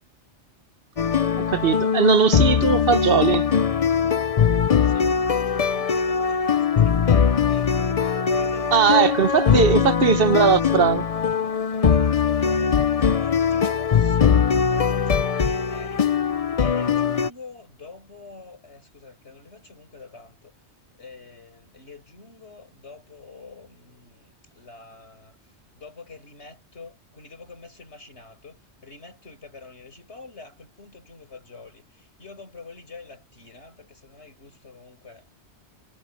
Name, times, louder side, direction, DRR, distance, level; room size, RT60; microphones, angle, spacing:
sound 1, 1.0-17.3, left 7 dB, 40° left, 0.6 m, -21 dB
voice 1, 1.4-3.5 8.7-11.0, right 6 dB, 60° right, 1.0 m, -19 dB
voice 2, 4.8-9.6 9.9-10.3 11.7-14.4 14.7-16.2 16.6-20.6 20.9-35.3, left 3 dB, 70° left, 5.3 m, -46 dB
omnidirectional pair, 1.1 m